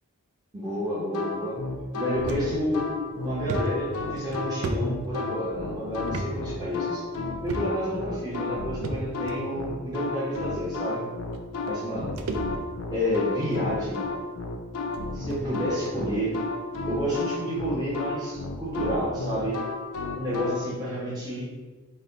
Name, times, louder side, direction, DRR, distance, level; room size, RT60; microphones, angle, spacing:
voice 1, 0.5-1.6 2.0-2.8 3.2-7.0 7.4-11.0 11.7-12.1 12.9-14.1 15.1-16.3 16.9-19.6 20.2-21.7, equal, 20° right, -9 dB, 0.8 m, -29 dB
sound 1, 1.1-20.6, left 3 dB, 70° left, 0.4 m, -32 dB
sound 2, 2.3-2.5 2.9-3.0 3.5-5.5 6.1-6.3 6.6-6.7 7.5-7.9 8.8-9.4 10.3-10.4 11.3-11.4 11.7-12.9 13.3-13.6 14.3-14.4 14.9-15.0 15.3-15.4 15.8-16.0, right 2 dB, 65° right, 0.4 m, -34 dB
4.1 x 2.1 x 3.8 m, 1.3 s
head